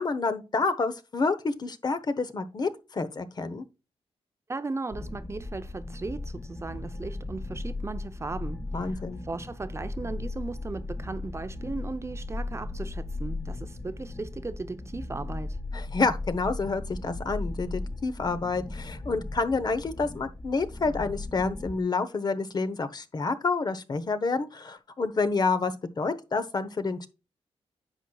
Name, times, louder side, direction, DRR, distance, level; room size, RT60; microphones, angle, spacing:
voice 1, 0.0-3.6 8.7-9.2 15.7-27.1, left 4 dB, 40° left, 1.0 m, -28 dB
voice 2, 4.5-15.6, right 3 dB, 25° right, 0.7 m, -37 dB
sound 1, 4.9-21.8, left 2 dB, 25° left, 2.4 m, -37 dB
10.0 x 6.3 x 2.3 m
cardioid pair, 100°, 11 cm